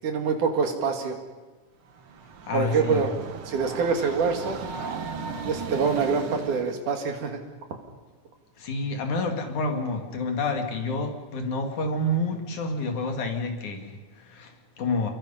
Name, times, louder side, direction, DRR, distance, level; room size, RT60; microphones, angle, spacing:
voice 1, 0.0-1.2 2.5-3.1 3.5-4.6 5.5-7.4, right 5 dB, 85° right, 4 dB, 3.8 m, -25 dB
Train, 1.9-6.8, right 5 dB, 55° right, 1.8 m, -37 dB
voice 2, 2.4-3.1 8.6-15.1, left 2 dB, 75° left, 3 dB, 3.8 m, -29 dB
30.0 x 22.0 x 5.7 m, 1.2 s
omnidirectional pair, 3.5 m